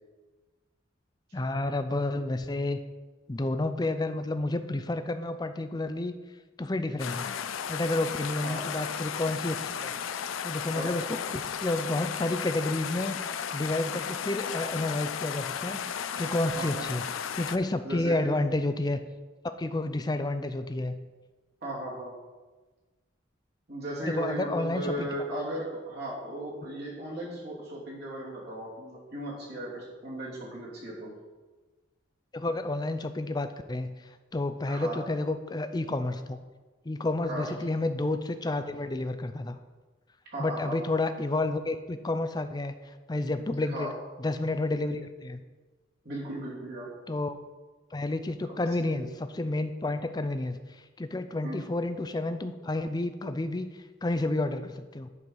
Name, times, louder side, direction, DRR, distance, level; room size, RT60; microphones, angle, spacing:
voice 1, 1.3-2.8 3.3-6.1 6.6-7.3 7.7-9.9 10.4-13.2 13.5-17.0 17.3-19.0 19.6-21.0 24.0-25.1 32.3-34.0 34.3-36.4 36.8-39.6 40.4-43.9 44.2-45.4 47.1-47.3 47.9-55.1, left 2 dB, 20° left, 9 dB, 0.4 m, -30 dB
sound 1, 7.0-17.6, left 8 dB, 80° left, 0.5 m, -34 dB
voice 2, 16.5-16.9 17.8-18.3 21.6-22.1 23.7-31.1 34.7-35.0 37.2-37.5 40.3-40.8 43.7-43.9 46.0-46.9 48.5-49.1 51.4-51.6, right 1 dB, 50° right, -5 dB, 2.8 m, -36 dB
10.5 x 4.7 x 5.4 m, 1.3 s
head